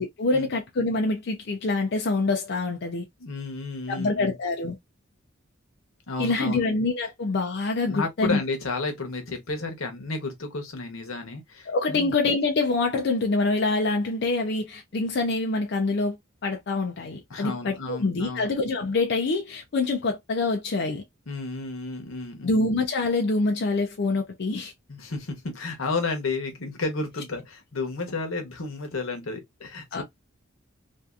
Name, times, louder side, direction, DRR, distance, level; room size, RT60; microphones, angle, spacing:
voice 1, 0.0-3.1 3.9-4.8 6.2-8.4 11.7-16.2 16.4-21.0 22.4-24.7 29.9-30.0, left 3 dB, 55° left, 0.5 m, -25 dB
voice 2, 3.2-4.3 6.1-6.6 7.9-12.1 17.3-18.5 21.3-22.6 24.9-30.0, left 3 dB, 90° left, 0.9 m, -32 dB
2.7 x 2.4 x 2.3 m
head